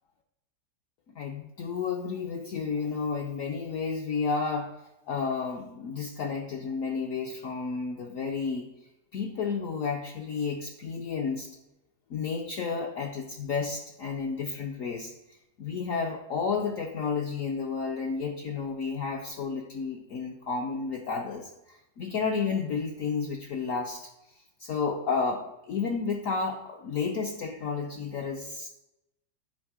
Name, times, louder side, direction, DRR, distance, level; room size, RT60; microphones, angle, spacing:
voice 1, 1.1-4.7 5.1-8.7 9.1-11.5 12.1-15.1 15.6-24.1 24.6-28.7, left 5 dB, 65° left, 1 dB, 0.8 m, -31 dB
8.8 x 3.0 x 4.7 m, 0.92 s
omnidirectional pair, 1.8 m